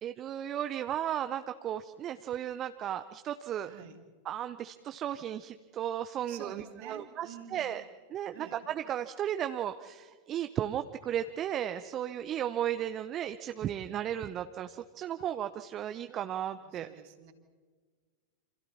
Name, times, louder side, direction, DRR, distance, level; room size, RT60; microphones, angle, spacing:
voice 1, 0.0-3.7 4.3-7.8 8.1-16.9, right 10 dB, 30° right, 10 dB, 0.8 m, -35 dB
voice 2, 3.6-4.0 6.2-7.8 8.3-8.6 16.6-17.3, right 8 dB, 50° right, 4 dB, 3.1 m, -48 dB
28.5 x 27.5 x 4.3 m, 1.5 s
figure-of-eight pair, 90°, 0 cm